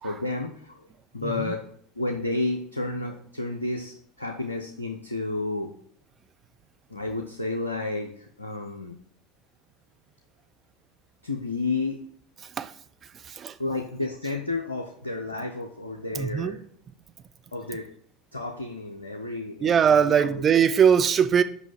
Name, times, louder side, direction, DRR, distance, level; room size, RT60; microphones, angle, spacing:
voice 1, 0.0-0.9 1.1-1.6 1.9-5.7 6.9-9.0 11.2-12.0 13.6-16.6 17.5-17.9 18.3-20.4, left 2 dB, 85° left, 0.6 m, -31 dB
voice 2, 1.2-1.5 12.4-12.7 13.2-13.6 16.1-16.6 19.6-21.4, right 7 dB, 30° right, 0.5 m, -21 dB
6.0 x 5.4 x 5.7 m
figure-of-eight pair, 75°, 0 cm